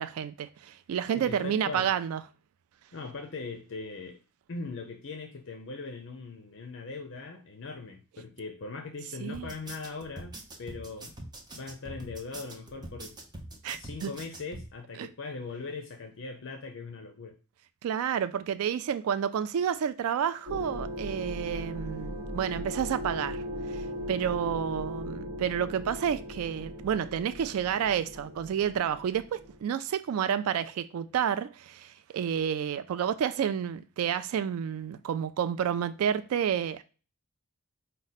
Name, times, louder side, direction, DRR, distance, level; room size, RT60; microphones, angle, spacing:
voice 1, 0.0-2.2 9.2-9.5 13.6-14.1 15.0-15.1 17.8-23.4 23.7-36.8, right 8 dB, 80° right, 0.3 m, -30 dB
voice 2, 1.1-1.9 2.9-4.2 4.5-11.1 11.5-13.2 13.8-17.4, left 4 dB, 55° left, 0.6 m, -40 dB
sound 1, 9.3-14.7, right 1 dB, 20° right, 0.6 m, -43 dB
sound 2, 20.5-29.6, equal, 40° right, 1.1 m, -38 dB
4.9 x 2.2 x 4.0 m
head